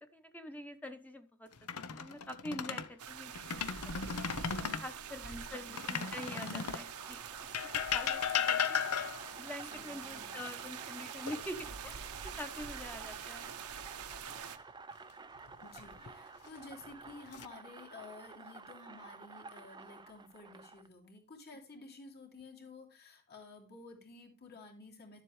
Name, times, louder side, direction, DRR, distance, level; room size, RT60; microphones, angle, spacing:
voice 1, 0.0-1.5 1.8-4.2 4.7-7.2 7.7-8.8 9.4-12.1 12.4-13.5, left 1 dB, 5° left, 7 dB, 1.0 m, -45 dB
sound 1, 1.5-2.9 3.4-4.9 5.8-6.9 7.5-9.4 11.3-12.0 12.4-12.6 15.5-16.1 16.8-17.5, left 7 dB, 80° left, 0.8 m, -35 dB
sound 2, 3.0-14.6, right 7 dB, 75° right, 0.8 m, -45 dB
voice 2, 5.2-6.1 9.4-10.6 15.6-25.2, left 3 dB, 45° left, 1 dB, 2.6 m, -53 dB
sound 3, 5.7-20.9, right 4 dB, 20° right, 0.5 m, -52 dB
11.5 x 7.4 x 3.2 m, 0.29 s
head